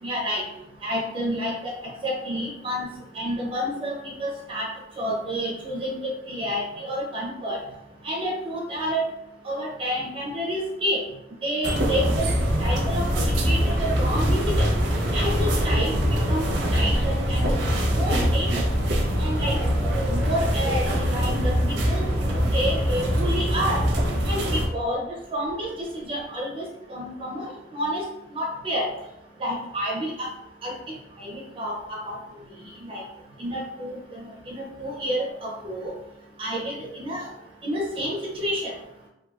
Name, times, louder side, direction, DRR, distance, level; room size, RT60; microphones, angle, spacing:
voice 1, 0.0-0.4 0.8-1.7 2.0-2.9 3.1-4.7 5.0-6.0 6.3-7.6 8.0-9.0 9.4-11.0 11.4-12.2 12.6-14.7 15.1-17.6 17.9-18.7 19.2-23.8 24.3-25.1 25.3-27.4 27.7-28.0 28.3-28.9 29.4-30.3 30.6-30.7 31.2-32.2 32.8-33.0 33.4-35.9 36.4-37.3 37.6-38.7, equal, 30° right, -1 dB, 0.4 m, -29 dB
sound 1, 11.6-24.7, equal, 75° right, 0.6 m, -23 dB
3.3 x 2.2 x 2.2 m, 0.89 s
head